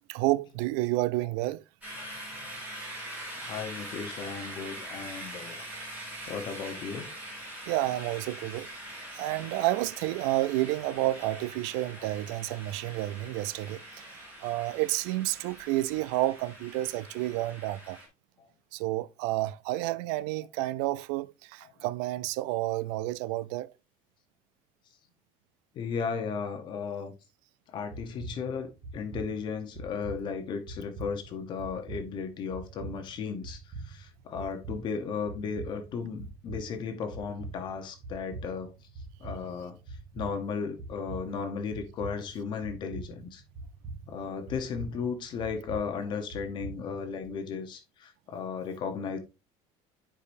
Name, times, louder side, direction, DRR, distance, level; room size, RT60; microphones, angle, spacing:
voice 1, 0.1-1.6 4.4-4.5 7.7-8.7 9.1-18.0 18.7-23.7, right 17 dB, 80° right, 0.4 m, -30 dB
sound 1, 1.8-18.1, right 1 dB, 10° right, 2.9 m, -43 dB
voice 2, 3.3-7.1 12.0-12.1 20.4-20.5 20.8-20.9 21.6-21.7 25.7-27.1 27.7-38.9 39.2-43.4 44.1-49.2, left 6 dB, 35° left, 0.8 m, -35 dB
sound 2, 27.9-47.3, right 3 dB, 30° right, 1.7 m, -44 dB
9.8 x 4.8 x 2.6 m
cardioid pair, 180°, 14 cm